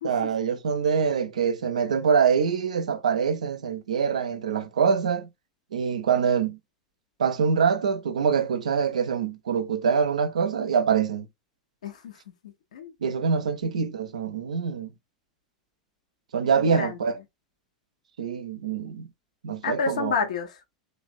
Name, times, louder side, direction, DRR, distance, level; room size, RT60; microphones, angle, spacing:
voice 1, 0.0-5.3 5.7-6.6 7.2-11.3 13.0-14.9 16.3-17.1 18.2-19.1 19.4-20.1, right 6 dB, 75° right, 0.5 m, -24 dB
voice 2, 11.8-12.2 12.4-12.9 16.6-17.0 19.6-20.6, left 5 dB, 70° left, 0.6 m, -30 dB
3.2 x 2.2 x 2.5 m
figure-of-eight pair, 85°, 4 cm